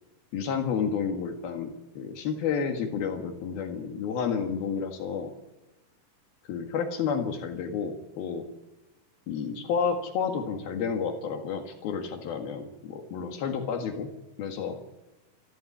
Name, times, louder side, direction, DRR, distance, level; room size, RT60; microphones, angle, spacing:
voice 1, 0.3-5.3 6.5-8.4 9.3-14.1 14.4-14.8, left 6 dB, 75° left, 4 dB, 3.6 m, -30 dB
28.0 x 11.5 x 9.9 m, 1.0 s
omnidirectional pair, 4.3 m